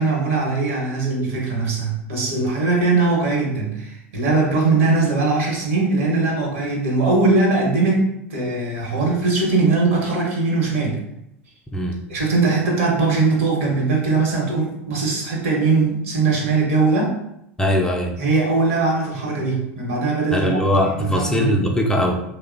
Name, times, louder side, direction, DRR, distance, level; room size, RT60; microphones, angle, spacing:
voice 1, 0.0-11.0 12.1-17.2 18.2-20.6 21.0-21.7, right 3 dB, 75° right, -2 dB, 0.9 m, -20 dB
voice 2, 11.7-12.0 17.6-18.1 20.3-22.2, equal, 10° left, 1 dB, 0.4 m, -20 dB
2.9 x 2.0 x 2.5 m, 0.81 s
hypercardioid pair, 85°, 7 cm